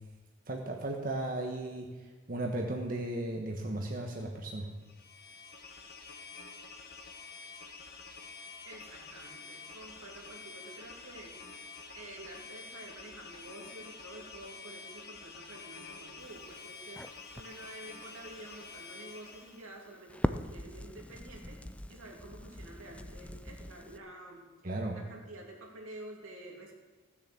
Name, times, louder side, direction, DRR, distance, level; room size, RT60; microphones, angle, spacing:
voice 1, 0.5-4.7 24.6-25.0, right 1 dB, 45° right, 1 dB, 1.2 m, -36 dB
sound 1, 4.8-19.6, left 4 dB, 50° left, 1.5 m, -48 dB
voice 2, 8.6-11.3 11.9-17.0 17.3-21.6 21.9-24.4 24.9-26.8, right 1 dB, 90° right, 0 dB, 2.8 m, -49 dB
Crackle, 16.2-24.0, left 1 dB, 5° left, 0.3 m, -41 dB
16.0 x 7.3 x 7.0 m, 1.2 s
head